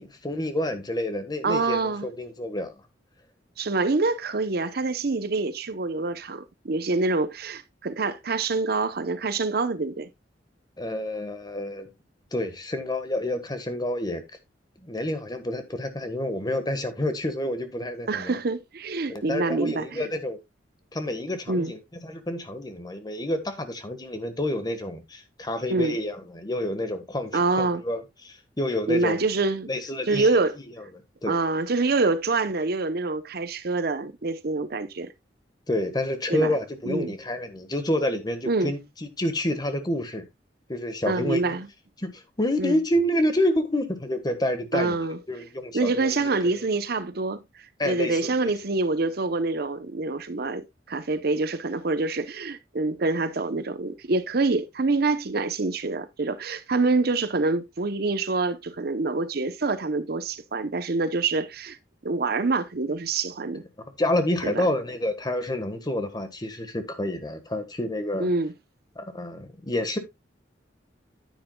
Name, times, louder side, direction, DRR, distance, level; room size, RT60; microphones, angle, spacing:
voice 1, 0.0-2.7 10.8-11.9 12.3-14.2 14.8-18.4 19.1-20.4 20.9-29.2 29.7-30.3 31.2-31.3 35.7-38.8 39.2-40.3 40.7-41.5 42.0-45.0 45.3-46.5 47.8-48.5 64.0-68.3 68.9-70.0, left 1 dB, 25° left, 1.4 m, -28 dB
voice 2, 1.4-2.1 3.6-10.1 18.1-20.1 21.5-21.7 25.7-26.0 27.3-27.8 28.9-29.7 30.1-30.6 31.2-35.1 36.3-36.5 36.8-37.1 38.5-38.7 41.1-41.7 42.6-42.8 44.7-45.2 45.7-47.4 47.8-61.8 62.0-63.6 64.4-64.7 68.2-68.5, right 3 dB, 55° right, 0.8 m, -26 dB
9.9 x 9.3 x 2.2 m
head